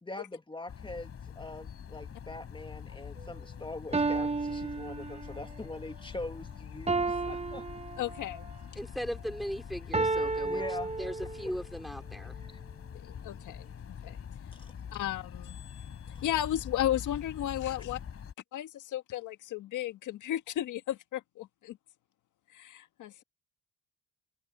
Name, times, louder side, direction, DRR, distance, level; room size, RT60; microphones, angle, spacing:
voice 1, 0.0-7.7 10.4-10.9 11.4-11.5 12.5-12.6 14.5-14.7 16.1-16.3, left 2 dB, 15° left, 2.1 m, -43 dB
sound 1, 0.7-18.3, left 7 dB, 50° left, 4.0 m, -45 dB
sound 2, 3.2-3.3 3.9-5.5 6.9-8.5 9.9-11.6, right 3 dB, 20° right, 1.0 m, -32 dB
voice 2, 8.0-8.5 13.0-13.7 14.0-14.2 14.9-18.0 18.5-21.8 22.5-23.2, left 12 dB, 80° left, 1.9 m, -34 dB
voice 3, 8.7-10.6 11.0-12.4, equal, ahead, 4.6 m, -37 dB
cardioid pair, 90°, 30 cm